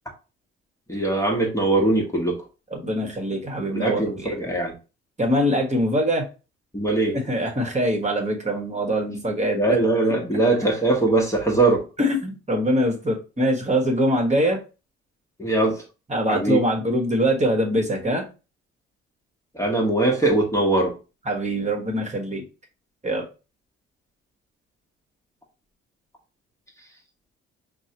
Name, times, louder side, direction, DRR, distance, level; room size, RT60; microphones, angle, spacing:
voice 1, 0.9-2.4 3.7-4.7 6.7-7.2 9.5-11.8 15.4-15.8 16.3-16.6 19.5-20.9, right 2 dB, 10° left, 0 dB, 1.3 m, -21 dB
voice 2, 2.7-4.3 5.2-6.3 7.1-9.8 12.0-14.6 16.1-18.2 21.3-22.4 23.0-23.2, equal, 20° right, 0 dB, 1.4 m, -23 dB
5.3 x 2.3 x 2.9 m, 0.32 s
hypercardioid pair, 50°, 31 cm